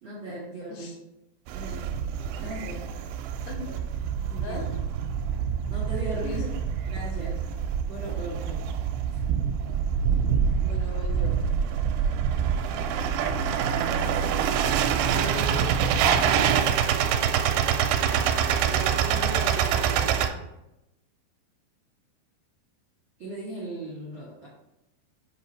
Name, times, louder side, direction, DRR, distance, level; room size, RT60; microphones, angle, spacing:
voice 1, 0.0-0.9 1.5-2.0 2.4-2.9 4.1-4.6 5.7-6.4 6.9-7.4 7.9-8.6 23.2-24.5, right 2 dB, 65° right, -7 dB, 1.2 m, -37 dB
sound 1, 1.5-20.3, right 8 dB, 85° right, 2.4 m, -26 dB
voice 2, 3.5-3.8 4.4-4.8 6.2-6.5 10.6-11.4 15.1-16.1 18.6-20.4, left 4 dB, 80° left, 1 dB, 2.8 m, -38 dB
8.0 x 2.9 x 4.4 m, 0.90 s
omnidirectional pair, 5.1 m